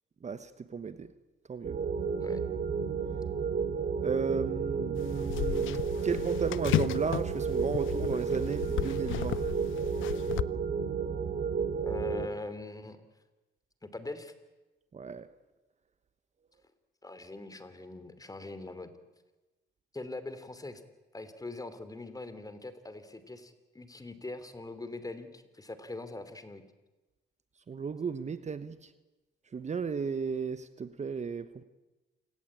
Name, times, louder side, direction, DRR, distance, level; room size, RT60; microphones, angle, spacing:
voice 1, 0.2-1.1 1.5-1.8 4.0-9.4 14.9-15.3 27.7-28.9 29.5-31.6, right 5 dB, 35° right, 1.1 m, -34 dB
sound 1, 1.6-12.3, right 5 dB, 50° right, 2.5 m, -32 dB
sound 2, 5.0-10.4, left 14 dB, 80° left, 0.7 m, -34 dB
voice 2, 11.8-13.0 13.8-14.3 17.0-18.9 19.9-20.8 21.1-26.6, left 2 dB, 20° left, 2.9 m, -42 dB
28.0 x 18.5 x 8.8 m
cardioid pair, 90°, 20 cm